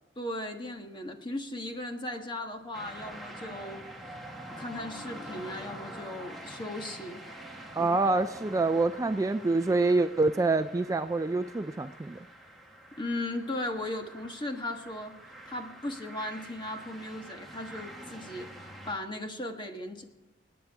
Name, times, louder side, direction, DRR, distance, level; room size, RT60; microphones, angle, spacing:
voice 1, 0.2-3.8 4.6-7.2 7.8-8.0 13.0-15.2 15.5-20.0, left 1 dB, 25° left, 4 dB, 1.4 m, -37 dB
sound 1, 2.7-18.9, right 1 dB, ahead, 1.7 m, -46 dB
voice 2, 7.8-12.2, right 3 dB, 20° right, 9 dB, 0.3 m, -26 dB
27.0 x 9.3 x 3.6 m, 1.1 s
head